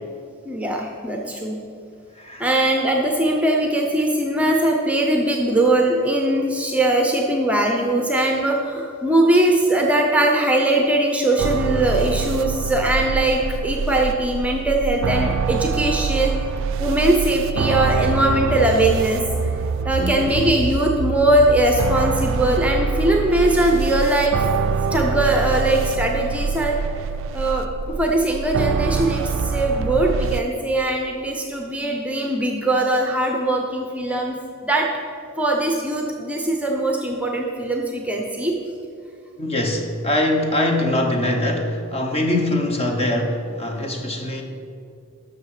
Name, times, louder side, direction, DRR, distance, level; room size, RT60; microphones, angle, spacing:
voice 1, 0.5-1.6 2.4-16.3 16.8-19.5 19.8-24.4 24.9-26.8 27.3-27.7 28.0-34.4 34.6-34.9 35.4-38.5, right 1 dB, 5° right, 1 dB, 0.7 m, -20 dB
sound 1, 11.4-30.4, right 5 dB, 65° right, 0.3 m, -25 dB
voice 2, 20.0-20.5 39.4-44.4, left 1 dB, 30° left, 3 dB, 1.1 m, -23 dB
12.0 x 6.4 x 4.9 m, 2.4 s
head